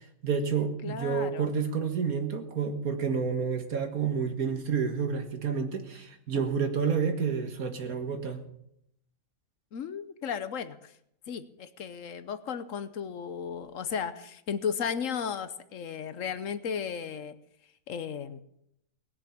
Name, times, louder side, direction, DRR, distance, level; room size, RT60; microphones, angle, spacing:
voice 1, 0.2-8.4, right 6 dB, 80° right, 6 dB, 2.1 m, -29 dB
voice 2, 0.8-1.5 9.7-10.9 11.3-17.3 17.9-18.4, left 7 dB, 65° left, 12 dB, 1.2 m, -35 dB
19.0 x 6.9 x 8.7 m, 0.77 s
omnidirectional pair, 1.5 m